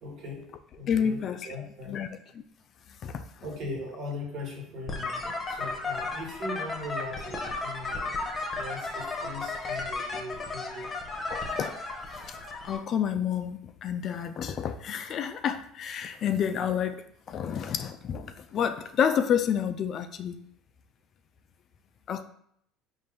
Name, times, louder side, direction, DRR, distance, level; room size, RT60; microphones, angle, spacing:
voice 1, 0.0-0.4 0.8-2.0 3.4-8.2 8.5-10.9, left 2 dB, 55° right, -1 dB, 1.3 m, -39 dB
voice 2, 0.9-2.4 3.0-3.2 11.3-11.8 12.6-20.4 22.1-22.2, left 8 dB, 45° left, 9 dB, 0.3 m, -29 dB
sound 1, 4.9-12.8, left 3 dB, 25° left, 0.8 m, -34 dB
4.1 x 2.6 x 3.4 m, 0.69 s
supercardioid pair, 105°, 0 cm